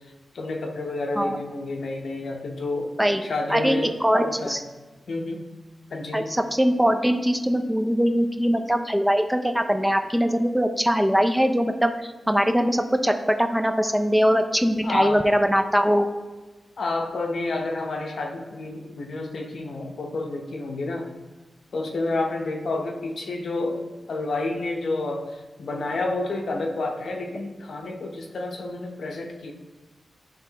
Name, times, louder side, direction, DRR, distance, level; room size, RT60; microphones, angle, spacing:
voice 1, 0.3-2.9 3.2-3.9 4.2-4.6 5.1-5.4 5.9-6.3 14.8-15.2 16.8-21.1 21.7-29.5, left 2 dB, 70° left, 3 dB, 0.7 m, -29 dB
voice 2, 3.5-4.6 6.1-16.1, equal, 5° right, 6 dB, 0.4 m, -22 dB
10.5 x 3.5 x 2.9 m, 1.2 s
wide cardioid pair, 95°, 0 cm